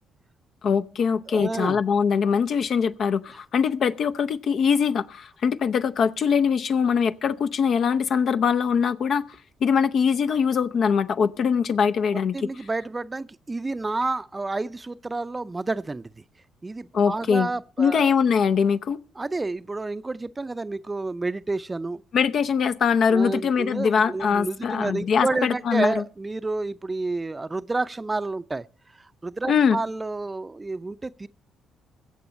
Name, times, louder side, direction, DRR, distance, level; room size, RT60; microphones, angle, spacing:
voice 1, 0.6-9.2 9.6-12.3 16.9-17.5 17.8-19.0 22.1-26.0 29.5-29.8, left 6 dB, 55° left, 0.6 m, -22 dB
voice 2, 1.3-1.8 12.3-16.1 16.6-18.1 19.2-22.0 23.1-28.7 29.0-31.3, right 3 dB, 25° right, 0.5 m, -29 dB
22.5 x 7.7 x 4.2 m
figure-of-eight pair, 45°, 0 cm